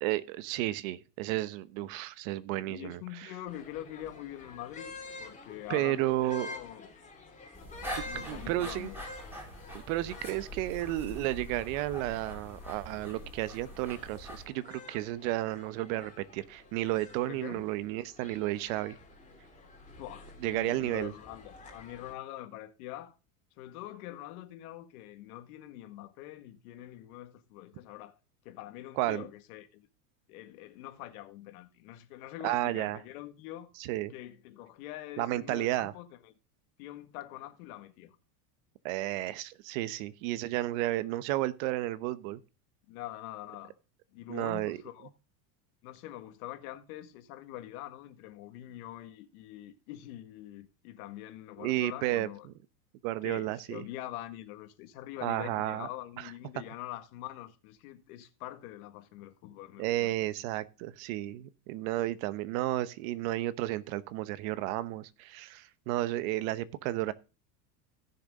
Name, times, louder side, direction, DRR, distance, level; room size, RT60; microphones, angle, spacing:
voice 1, 0.0-3.3 5.7-6.5 7.8-8.9 9.7-18.9 20.4-21.1 29.0-29.3 32.4-33.0 33.8-34.1 35.2-35.9 38.8-42.4 44.3-44.8 51.6-52.3 53.0-53.8 55.2-55.9 59.8-67.1, right 16 dB, 60° right, 1.1 m, -32 dB
voice 2, 2.7-6.9 8.0-9.0 17.3-17.6 20.0-23.2 23.6-28.2 28.5-29.9 30.3-33.7 34.1-36.3 36.8-38.2 42.9-43.7 44.1-45.1 45.8-52.5 53.2-60.1, left 14 dB, 70° left, 1.9 m, -44 dB
sound 1, 3.5-22.1, left 2 dB, 15° left, 3.1 m, -49 dB
sound 2, 7.5-14.5, equal, 5° right, 4.6 m, -44 dB
16.0 x 6.8 x 3.7 m
supercardioid pair, 135°, 46 cm